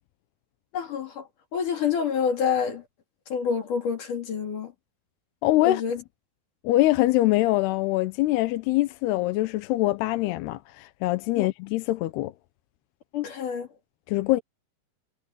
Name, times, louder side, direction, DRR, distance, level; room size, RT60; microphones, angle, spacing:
voice 1, 0.7-1.2 1.5-2.8 3.3-4.7 5.7-6.0 11.3-11.5 13.1-13.7, left 7 dB, 55° left, 4.1 m, -27 dB
voice 2, 5.4-5.8 6.6-12.3 14.1-14.4, left 17 dB, 85° left, 2.9 m, -23 dB
omnidirectional pair, 4.6 m